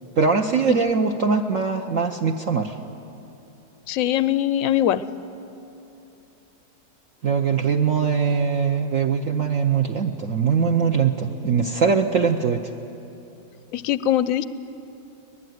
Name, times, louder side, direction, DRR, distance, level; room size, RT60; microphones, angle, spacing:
voice 1, 0.2-2.8 7.2-12.6, right 5 dB, 55° right, 3 dB, 1.1 m, -21 dB
voice 2, 3.9-5.0 13.7-14.4, left 11 dB, 60° left, 14 dB, 0.9 m, -21 dB
24.5 x 19.5 x 9.4 m, 2.9 s
omnidirectional pair, 1.9 m